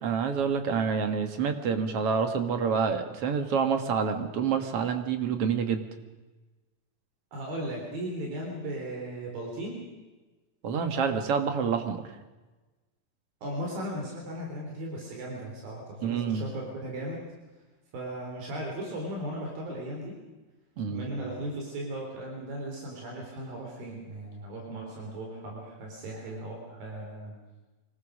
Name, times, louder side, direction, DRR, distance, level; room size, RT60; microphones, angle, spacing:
voice 1, 0.0-5.8 10.6-12.0 16.0-16.5 20.8-21.1, right 6 dB, 50° right, 7 dB, 2.1 m, -27 dB
voice 2, 7.3-9.8 13.4-17.2 17.9-20.2 20.9-27.4, right 1 dB, 80° right, -1 dB, 5.4 m, -37 dB
25.5 x 20.0 x 6.3 m, 1.2 s
omnidirectional pair, 4.1 m